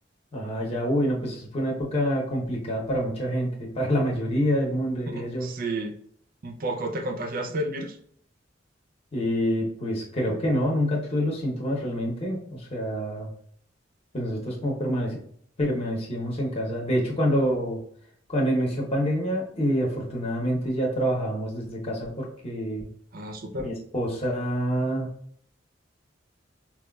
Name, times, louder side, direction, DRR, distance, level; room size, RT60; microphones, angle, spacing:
voice 1, 0.3-5.5 9.1-13.3 14.1-15.2 15.6-17.8 18.3-22.9 23.6-25.1, equal, 35° left, -2 dB, 0.8 m, -27 dB
voice 2, 5.1-5.9 6.4-8.0 23.1-23.7, right 1 dB, 50° right, 4 dB, 0.5 m, -31 dB
4.2 x 2.3 x 2.2 m, 0.63 s
head